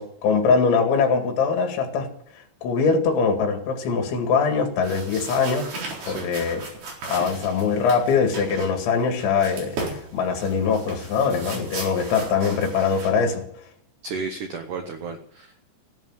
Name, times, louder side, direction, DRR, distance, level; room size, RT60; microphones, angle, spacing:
voice 1, 0.0-2.1 2.6-5.7 6.1-6.6 7.1-13.4, left 5 dB, 80° left, 5 dB, 4.6 m, -22 dB
sound 1, 4.8-13.1, right 3 dB, 55° right, 5.8 m, -37 dB
voice 2, 14.0-15.7, right 4 dB, 85° right, 6 dB, 1.8 m, -33 dB
16.0 x 11.0 x 7.3 m, 0.69 s
omnidirectional pair, 5.3 m